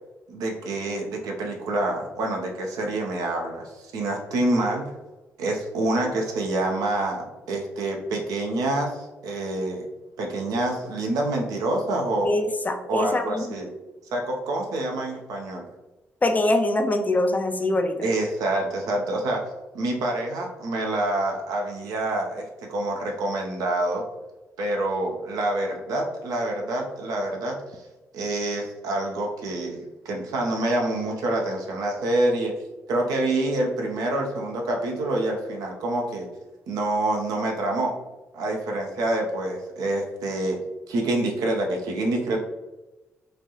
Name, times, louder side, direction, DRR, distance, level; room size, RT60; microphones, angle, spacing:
voice 1, 0.3-4.8 5.4-9.9 10.2-12.3 12.8-13.7 14.1-15.7 18.0-19.4 19.7-24.0 24.6-27.8 28.1-32.5 32.9-36.3 36.7-37.9 38.3-40.6 40.9-42.4, right 2 dB, 60° right, 1 dB, 0.5 m, -27 dB
voice 2, 12.2-13.6 16.2-18.1, left 2 dB, 25° left, 6 dB, 0.4 m, -23 dB
3.1 x 2.5 x 2.7 m, 1.1 s
figure-of-eight pair, 40°, 7 cm